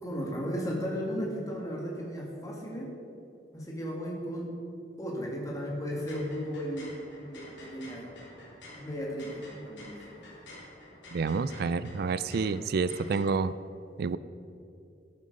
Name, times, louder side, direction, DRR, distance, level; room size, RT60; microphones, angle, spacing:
voice 1, 0.0-2.9 3.5-4.5 5.0-8.1 8.8-10.2, equal, 20° left, -2 dB, 2.1 m, -35 dB
sound 1, 5.8-13.2, left 1 dB, 85° left, 3.1 m, -50 dB
voice 2, 11.1-13.5 14.0-14.2, right 4 dB, 60° right, 16 dB, 0.4 m, -29 dB
11.5 x 8.8 x 5.3 m, 2.6 s
head